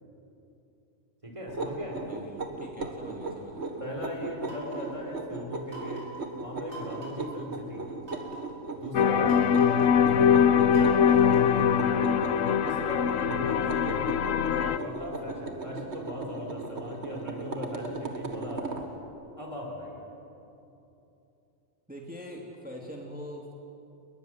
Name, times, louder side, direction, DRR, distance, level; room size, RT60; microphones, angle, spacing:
voice 1, 1.2-2.0 2.8-2.9 3.8-6.1 6.4-7.9 8.7-9.4 10.1-12.0 12.6-14.0 14.6-18.8 19.4-20.0, left 1 dB, 25° right, 0 dB, 4.9 m, -38 dB
sound 1, 1.5-18.9, right 3 dB, 55° right, 2.1 m, -38 dB
voice 2, 2.0-3.8 21.9-23.5, equal, 5° right, -1 dB, 2.5 m, -43 dB
sound 2, 4.4-5.0 5.7-6.2 6.7-7.3 8.0-8.5 9.3-9.9 10.7-11.6, right 2 dB, 80° right, 6.3 m, -44 dB
sound 3, 8.9-14.8, left 8 dB, 75° left, 1.2 m, -22 dB
29.5 x 21.0 x 7.9 m, 2.8 s
omnidirectional pair, 1.4 m